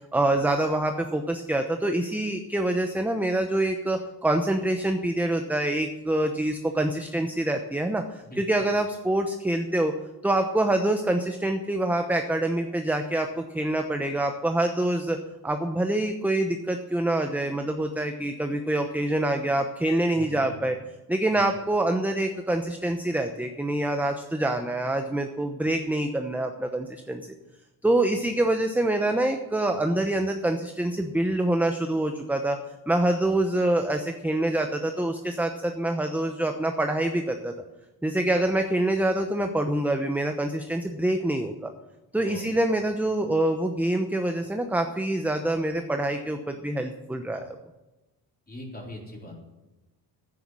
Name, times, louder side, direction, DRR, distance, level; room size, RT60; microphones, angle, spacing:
voice 1, 0.1-9.9 10.2-20.8 21.1-27.3 27.8-32.6 32.9-37.5 38.0-41.7 42.1-47.6, right 1 dB, 5° right, 5 dB, 0.8 m, -26 dB
voice 2, 8.2-8.8 20.1-20.5 21.3-21.5 28.2-28.4 42.1-42.5 48.5-49.4, left 1 dB, 20° left, -1 dB, 4.0 m, -42 dB
9.7 x 9.5 x 7.5 m, 1.0 s
cardioid pair, 100°, 42 cm